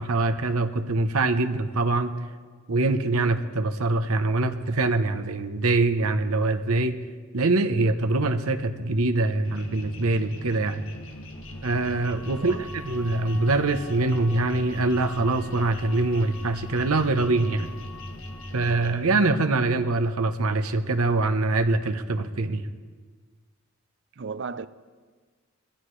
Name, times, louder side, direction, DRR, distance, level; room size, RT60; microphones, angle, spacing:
voice 1, 0.0-2.1 2.7-7.0 7.3-10.8 11.6-17.7 18.5-22.7, right 2 dB, 80° right, 0.9 m, -24 dB
sound 1, 9.4-18.9, left 1 dB, 65° left, 1.7 m, -39 dB
voice 2, 12.4-12.7 24.2-24.7, right 5 dB, 50° right, 0.5 m, -34 dB
21.0 x 14.5 x 3.2 m
head